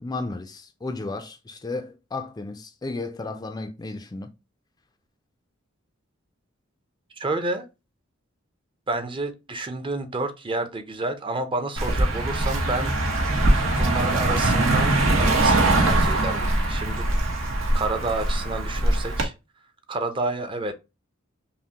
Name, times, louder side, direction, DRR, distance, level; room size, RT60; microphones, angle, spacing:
voice 1, 0.0-4.3, left 3 dB, 20° left, 0.4 m, -33 dB
voice 2, 7.2-7.7 8.9-12.9 13.8-17.0 17.7-19.3 19.9-20.8, right 2 dB, 25° right, 0.5 m, -29 dB
Car passing by, 11.8-19.2, right 2 dB, 85° right, 1.0 m, -22 dB
5.6 x 2.1 x 2.8 m
head